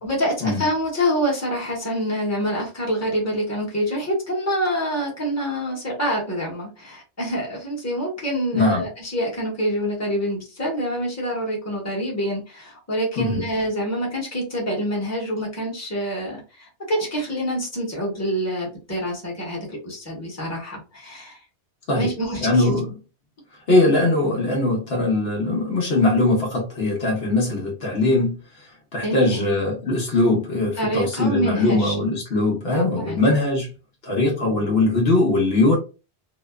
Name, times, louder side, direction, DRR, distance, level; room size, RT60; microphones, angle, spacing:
voice 1, 0.0-21.4 21.9-22.7 29.0-29.5 30.8-31.9 32.7-33.2, equal, 15° left, 1.1 m, -26 dB
voice 2, 8.5-8.8 13.2-13.4 21.9-22.1 22.4-22.9 23.7-28.4 28.9-33.7 34.0-35.8, left 2 dB, 65° left, 1.0 m, -20 dB
2.8 x 2.1 x 2.3 m
omnidirectional pair, 1.1 m